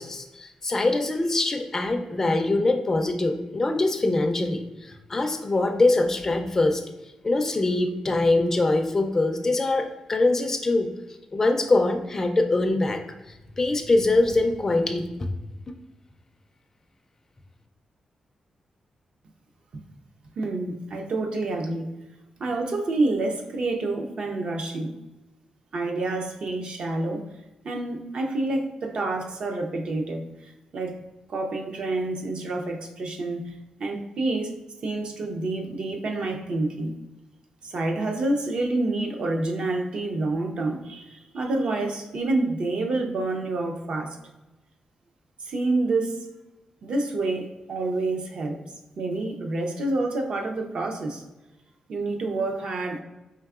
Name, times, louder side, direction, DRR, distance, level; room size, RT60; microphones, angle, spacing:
voice 1, 0.0-6.8 7.2-10.9 11.3-13.0 13.6-15.0, left 2 dB, 20° left, 4 dB, 0.3 m, -23 dB
voice 2, 20.4-21.9 22.4-24.9 25.7-27.2 27.6-31.0 31.3-34.5 34.8-36.9 37.6-44.2 45.4-46.2 46.8-48.6 49.0-51.2 51.9-53.0, right 2 dB, 55° right, 3 dB, 0.5 m, -28 dB
4.5 x 3.3 x 2.3 m, 1.1 s
wide cardioid pair, 155°, 2 cm